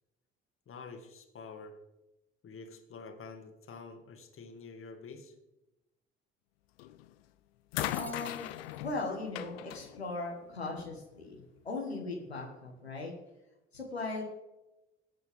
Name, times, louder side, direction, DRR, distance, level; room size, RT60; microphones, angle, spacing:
voice 1, 0.7-1.8 2.4-5.3, left 4 dB, 45° left, 5 dB, 2.1 m, -48 dB
sound 1, 6.8-7.1 7.7-11.0 12.0-12.1, left 15 dB, 70° left, 0.6 m, -40 dB
Shatter, 7.8-9.0, left 1 dB, 5° left, 0.9 m, -49 dB
voice 2, 8.0-8.5 8.8-13.1 13.7-14.2, left 3 dB, 90° left, -1 dB, 1.5 m, -38 dB
20.5 x 8.1 x 3.6 m, 0.96 s
figure-of-eight pair, 50°, 31 cm